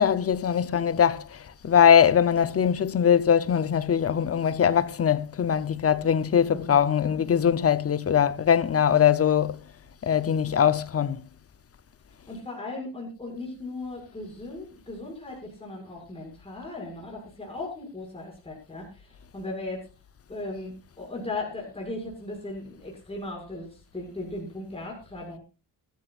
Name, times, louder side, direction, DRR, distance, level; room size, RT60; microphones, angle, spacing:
voice 1, 0.0-9.6 10.0-11.2, left 8 dB, 35° left, 0.8 m, -22 dB
voice 2, 6.5-7.2 12.3-19.9 20.3-25.4, left 2 dB, 15° left, 6.7 m, -37 dB
22.0 x 14.0 x 2.5 m
wide cardioid pair, 175°, 43 cm